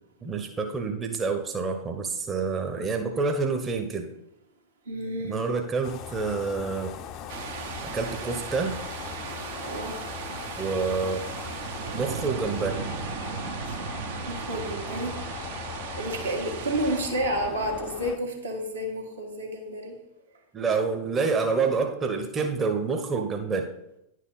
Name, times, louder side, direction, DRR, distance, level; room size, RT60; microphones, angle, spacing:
voice 1, 0.2-4.1 5.2-6.9 7.8-8.8 10.6-11.2 11.9-12.8 20.5-23.7, right 4 dB, 20° right, 4 dB, 0.8 m, -28 dB
voice 2, 4.8-5.5 9.6-10.1 13.6-13.8 14.1-15.3 16.0-20.0, right 1 dB, 75° right, 0 dB, 1.6 m, -31 dB
sound 1, 5.8-18.2, left 10 dB, 40° left, 0.6 m, -40 dB
sound 2, 7.3-17.0, right 7 dB, 55° right, 0.7 m, -36 dB
9.9 x 4.6 x 3.9 m, 0.80 s
figure-of-eight pair, 90°, 0 cm